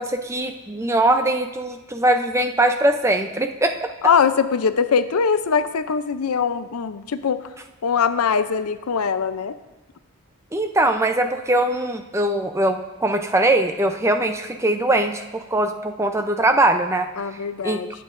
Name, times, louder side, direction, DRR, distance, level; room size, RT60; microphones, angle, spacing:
voice 1, 0.0-3.9 10.5-17.1 17.6-17.8, right 1 dB, 15° right, 6 dB, 0.5 m, -21 dB
voice 2, 4.0-7.5 7.8-9.6 17.2-17.9, left 6 dB, 90° left, 12 dB, 0.5 m, -22 dB
18.5 x 7.6 x 2.6 m, 1.1 s
head